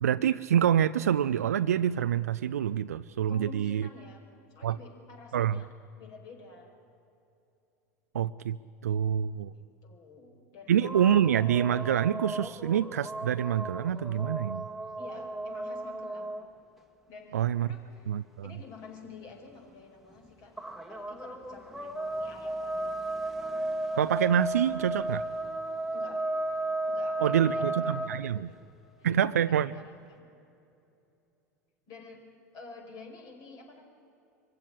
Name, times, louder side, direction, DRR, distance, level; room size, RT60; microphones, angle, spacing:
voice 1, 0.0-3.8 4.6-4.8 5.3-5.6 8.1-8.6 8.8-9.5 10.7-14.7 17.3-17.7 18.1-18.5 23.9-25.2 27.2-28.5 29.0-29.7, right 9 dB, 80° right, 11 dB, 0.4 m, -26 dB
voice 2, 3.3-4.2 4.5-5.7 6.0-6.7 9.5-10.8 15.0-16.4 17.1-18.1 18.4-20.5 20.9-22.9 25.9-26.2 26.9-28.0 29.0-29.1 29.4-30.3 31.9-32.2 32.5-33.8, left 3 dB, 50° left, 2 dB, 5.2 m, -49 dB
sound 1, 10.8-16.5 20.1-20.3 20.6-28.3, right 2 dB, 5° right, 1.6 m, -34 dB
23.5 x 15.5 x 9.8 m, 2.8 s
figure-of-eight pair, 80°, 8 cm